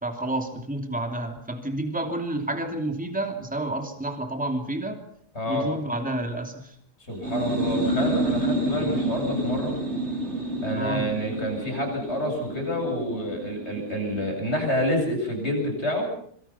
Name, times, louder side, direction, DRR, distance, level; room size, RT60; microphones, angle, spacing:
voice 1, 0.0-5.0 5.5-6.7 8.8-9.0 10.7-11.1, right 1 dB, 5° right, 5 dB, 2.8 m, -30 dB
voice 2, 5.3-5.7 7.1-9.7 10.6-16.1, equal, 40° left, 3 dB, 8.2 m, -28 dB
sound 1, 7.1-14.6, right 1 dB, 40° right, 3.6 m, -29 dB
26.0 x 24.5 x 5.9 m, 0.64 s
omnidirectional pair, 1.7 m